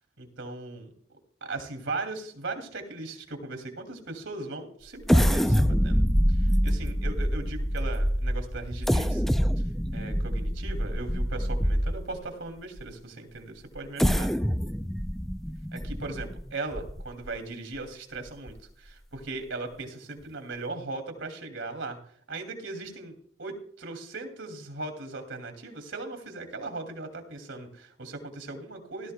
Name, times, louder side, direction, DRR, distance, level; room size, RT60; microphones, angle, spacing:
voice 1, 0.2-0.9 1.4-9.2 9.9-14.4 15.7-22.0 22.3-29.1, right 3 dB, 85° right, 5 dB, 2.6 m, -38 dB
sound 1, 5.0-12.2 12.8-12.9 13.8-17.3 17.8-17.9 18.3-18.5, equal, ahead, 0.4 m, -25 dB
17.5 x 13.0 x 2.2 m, 0.62 s
head